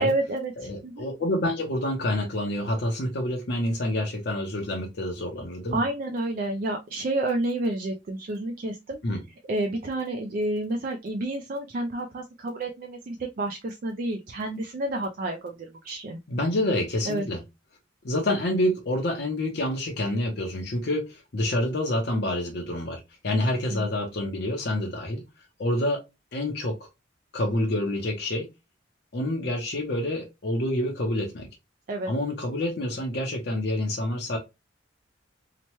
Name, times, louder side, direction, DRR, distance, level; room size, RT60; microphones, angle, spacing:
voice 1, 0.0-1.1 5.7-9.0 9.5-15.4 15.8-16.2 17.1-17.2 23.7-23.9 31.9-32.1, right 2 dB, 45° right, 0.3 m, -29 dB
voice 2, 0.6-5.8 9.0-9.2 16.3-17.4 18.0-25.2 25.6-26.0 26.3-26.8 27.3-28.5 29.1-31.5 32.1-34.4, left 1 dB, 60° left, 0.6 m, -27 dB
2.8 x 2.1 x 2.9 m
head